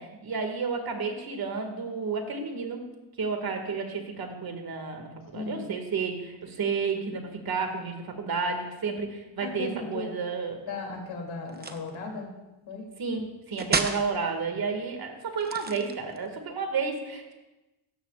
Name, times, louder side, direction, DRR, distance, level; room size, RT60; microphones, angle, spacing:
voice 1, 0.0-2.8 3.2-10.6 13.0-17.3, right 5 dB, 50° right, 4 dB, 2.1 m, -31 dB
voice 2, 5.3-5.7 9.4-10.2 10.6-12.3 12.7-12.9, left 4 dB, 75° left, 1 dB, 3.0 m, -36 dB
sound 1, 11.5-11.9 13.6-14.1 15.4-16.3, right 4 dB, 20° right, 0.8 m, -30 dB
17.0 x 13.0 x 2.5 m, 1.0 s
cardioid pair, 115°, 45 cm